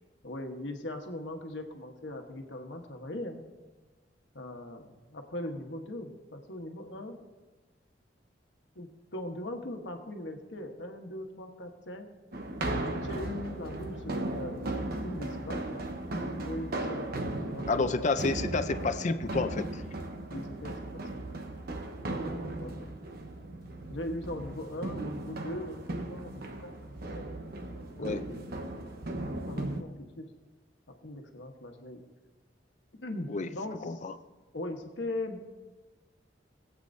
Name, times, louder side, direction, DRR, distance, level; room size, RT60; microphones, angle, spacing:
voice 1, 0.2-3.4 4.3-7.2 8.7-12.1 13.0-14.7 15.0-15.8 16.4-17.1 17.4-18.1 20.3-21.3 22.0-22.9 23.9-25.8 26.1-27.3 28.0-28.6 29.4-30.3 31.0-32.0 33.0-34.0 34.5-35.4, left 1 dB, 80° left, 4 dB, 1.2 m, -40 dB
sound 1, 12.3-29.8, right 2 dB, 60° right, 1.0 m, -36 dB
voice 2, 17.7-19.8 28.0-28.2 33.3-33.5 33.8-34.1, left 3 dB, 40° left, 10 dB, 0.5 m, -30 dB
21.5 x 8.1 x 2.7 m, 1.2 s
head